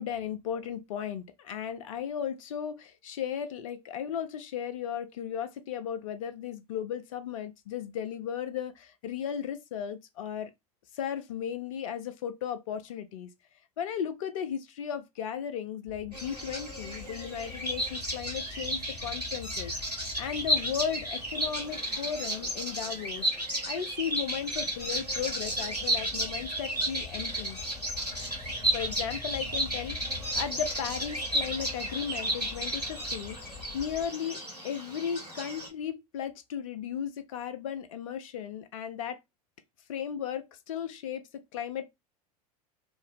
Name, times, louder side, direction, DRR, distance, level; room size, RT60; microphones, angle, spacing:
voice 1, 0.0-10.5 10.9-13.3 13.8-19.7 20.2-23.3 23.7-27.6 28.7-30.0 30.4-33.4 33.7-39.2 39.9-41.9, left 8 dB, 60° left, 0.5 m, -35 dB
sound 1, 15.9-34.1, left 6 dB, 5° right, 1.1 m, -47 dB
Bird vocalization bird call bird song, 16.1-35.7, right 1 dB, 90° right, 1.3 m, -33 dB
2.8 x 2.7 x 3.0 m
figure-of-eight pair, 80°, 20 cm